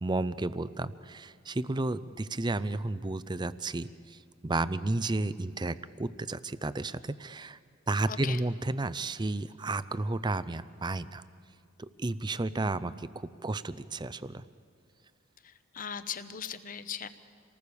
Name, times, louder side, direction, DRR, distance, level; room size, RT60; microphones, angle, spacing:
voice 1, 0.0-7.6 7.9-11.2 11.8-14.4, right 2 dB, 20° right, 15 dB, 0.5 m, -32 dB
voice 2, 8.1-8.4 15.4-17.1, left 7 dB, 40° left, 12 dB, 0.9 m, -38 dB
28.0 x 19.0 x 7.0 m, 2.1 s
head